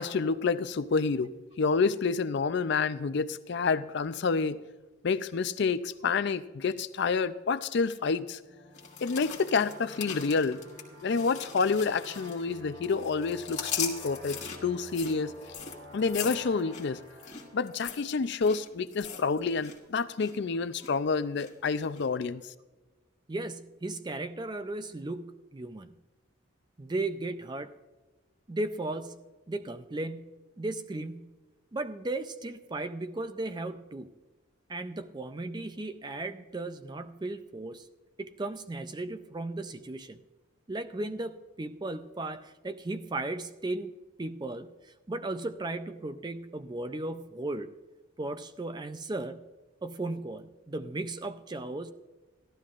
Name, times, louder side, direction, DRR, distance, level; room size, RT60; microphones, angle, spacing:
voice 1, 0.0-4.6 5.0-8.4 9.0-10.6 11.0-15.3 15.9-17.0 17.5-22.4, left 4 dB, 55° left, 0.4 m, -28 dB
sound 1, 8.4-18.7, left 1 dB, 85° right, 2.5 m, -49 dB
sound 2, 8.7-12.6 12.8-19.8 20.0-20.4 20.8-21.5 21.9-22.0, left 8 dB, 35° left, 1.6 m, -40 dB
voice 2, 23.3-25.9 26.8-27.7 28.5-29.2 29.5-31.3 31.7-34.1 34.7-37.9 38.2-40.2 40.7-43.9 44.2-44.7 45.1-47.7 48.2-49.4 49.8-51.9, right 2 dB, 20° right, 0.4 m, -36 dB
15.5 x 12.5 x 2.5 m
head